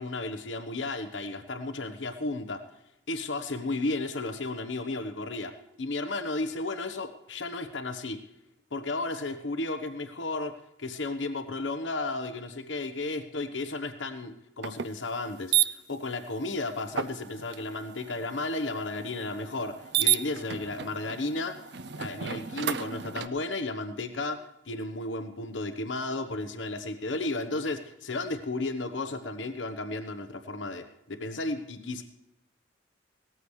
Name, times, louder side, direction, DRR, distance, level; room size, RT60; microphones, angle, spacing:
voice 1, 0.0-2.6 3.1-8.2 8.7-32.0, left 2 dB, 85° left, 7 dB, 1.1 m, -34 dB
sound 1, 14.6-14.9 15.5-15.7 16.9-23.3, right 11 dB, 65° right, 0.6 m, -32 dB
18.0 x 14.0 x 3.2 m, 0.88 s
head